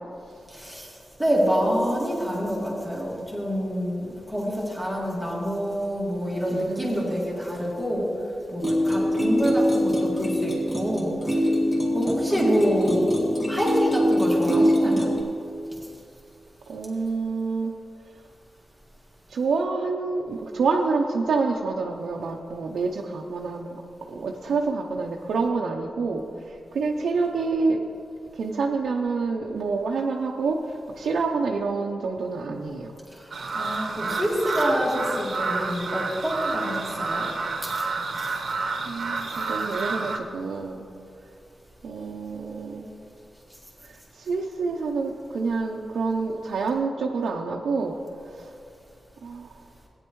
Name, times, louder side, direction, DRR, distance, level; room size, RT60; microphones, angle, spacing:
voice 1, 0.5-8.1 8.5-11.4 11.9-13.1 13.5-15.1 33.1-37.3 37.6-37.8 38.2-38.4, equal, 5° left, -5 dB, 2.0 m, -27 dB
voice 2, 6.5-7.1 16.7-17.7 19.3-23.8 24.1-27.8 28.3-32.9 38.8-40.9 41.8-42.9 43.8-47.9 48.3-48.5 49.2-49.5, right 4 dB, 80° right, 0 dB, 0.6 m, -27 dB
sound 1, 8.6-15.2, equal, 25° left, 2.0 m, -23 dB
sound 2, 33.3-40.2, right 3 dB, 60° right, 0.9 m, -29 dB
15.5 x 9.8 x 3.1 m, 2.6 s
wide cardioid pair, 115°, 0 cm